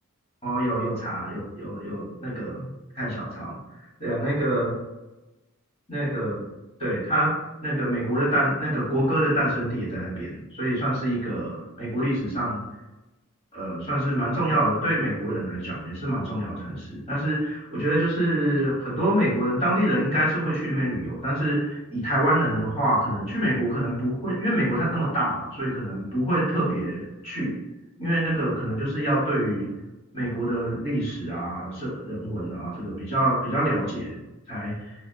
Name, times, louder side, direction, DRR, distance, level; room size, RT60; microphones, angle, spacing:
voice 1, 0.4-2.7 2.9-3.6 4.0-4.8 5.9-6.4 6.8-7.3 7.6-12.6 13.5-27.5 28.0-29.7 30.1-34.1 34.5-34.9, right 1 dB, 25° left, -7 dB, 1.1 m, -26 dB
2.8 x 2.2 x 2.2 m, 1.0 s
head